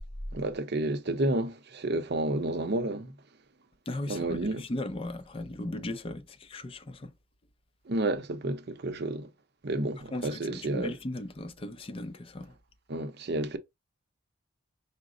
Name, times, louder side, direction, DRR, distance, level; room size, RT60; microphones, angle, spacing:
voice 1, 0.3-3.1 4.1-4.7 7.9-9.3 9.6-10.9 12.9-13.6, right 2 dB, 50° right, 0.6 m, -30 dB
voice 2, 3.9-7.1 10.1-12.5, left 1 dB, 25° left, 0.4 m, -37 dB
4.9 x 2.0 x 3.6 m
head